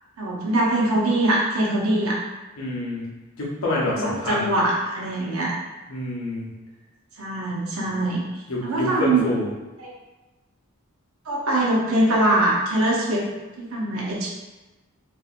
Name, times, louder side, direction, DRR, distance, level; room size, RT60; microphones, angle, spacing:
voice 1, 0.2-2.2 3.9-5.5 7.2-8.2 8.6-9.2 9.8-9.9 11.3-13.3 13.6-14.3, right 1 dB, 80° right, -4 dB, 0.7 m, -22 dB
voice 2, 2.6-3.1 3.4-4.6 5.9-6.5 8.5-9.5, left 2 dB, 90° left, -5 dB, 0.8 m, -27 dB
2.8 x 2.5 x 2.4 m, 1.1 s
head